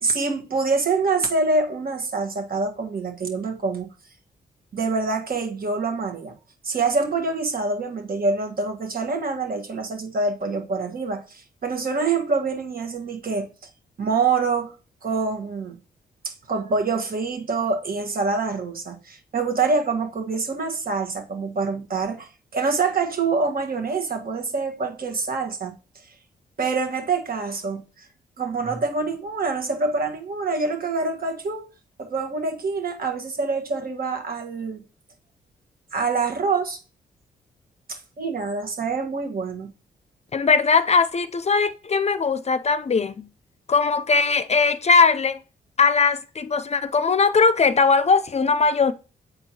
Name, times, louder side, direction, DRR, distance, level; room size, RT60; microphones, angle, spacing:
voice 1, 0.0-3.9 4.7-6.3 6.6-13.5 14.0-14.7 15.0-15.8 16.2-25.7 26.6-28.1 28.4-31.7 32.0-34.8 35.9-36.8 37.9-39.7, right 4 dB, 55° right, 1.7 m, -25 dB
voice 2, 40.3-43.3 43.7-45.4 45.8-48.9, left 5 dB, 40° left, 0.5 m, -20 dB
7.6 x 4.5 x 2.8 m
supercardioid pair, 50°, 18 cm